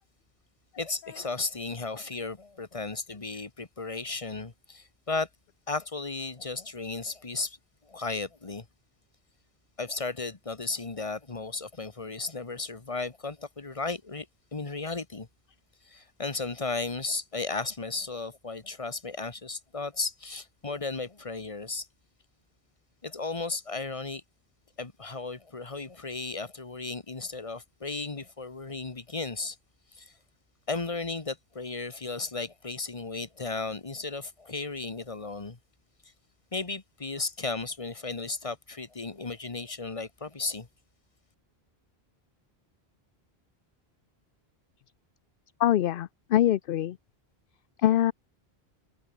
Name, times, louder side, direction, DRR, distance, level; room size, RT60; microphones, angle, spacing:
voice 1, 0.8-5.3 5.7-7.6 7.8-8.7 9.8-14.3 14.5-15.3 15.8-21.9 23.0-24.2 24.8-29.6 29.9-30.1 30.7-35.6 36.5-40.7, left 3 dB, 30° left, 1.6 m, -35 dB
voice 2, 45.6-47.0 47.8-48.1, left 12 dB, 65° left, 0.7 m, -24 dB
omnidirectional pair, 1.1 m